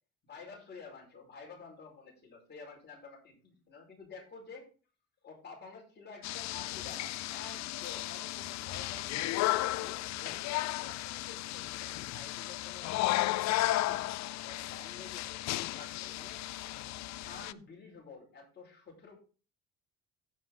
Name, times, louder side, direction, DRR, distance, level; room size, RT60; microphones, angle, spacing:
voice 1, 0.2-4.7 5.2-9.4 9.8-14.1 14.4-16.4 17.3-19.2, left 4 dB, 35° left, -1 dB, 4.9 m, -50 dB
sound 1, 6.2-17.5, left 17 dB, 60° left, 0.5 m, -34 dB
15.5 x 5.4 x 3.8 m, 0.37 s
cardioid pair, 120°, 30 cm